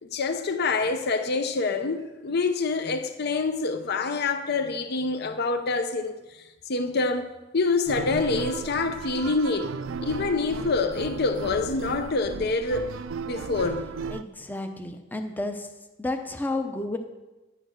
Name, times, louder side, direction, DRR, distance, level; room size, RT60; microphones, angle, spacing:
voice 1, 0.0-9.7 10.0-12.9 13.2-13.8, left 3 dB, 55° left, 0.7 m, -26 dB
sound 1, 7.9-14.2, right 5 dB, 80° right, 0.4 m, -35 dB
voice 2, 14.1-15.7 16.0-17.0, left 2 dB, 10° left, 0.7 m, -31 dB
10.0 x 8.9 x 6.4 m
head